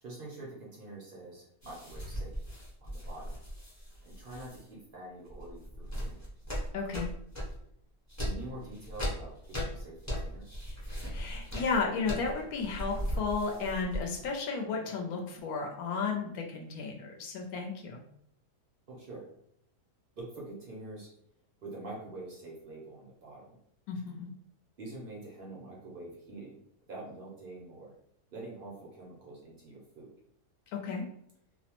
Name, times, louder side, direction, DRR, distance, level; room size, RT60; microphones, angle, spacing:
voice 1, 0.0-2.4 2.8-3.4 4.1-6.2 8.2-10.6 18.9-19.3 20.2-21.1 21.6-23.6 24.8-26.6 26.9-27.9 28.3-30.1, right 2 dB, 55° right, -4 dB, 0.6 m, -46 dB
sound 1, 1.6-4.6 5.3-7.6 8.1-14.3, equal, 20° left, 0.5 m, -38 dB
voice 2, 6.7-7.1 11.1-18.0 23.9-24.3 30.7-31.1, left 4 dB, 75° left, 1 dB, 1.0 m, -33 dB
2.7 x 2.0 x 2.9 m, 0.72 s
omnidirectional pair, 1.7 m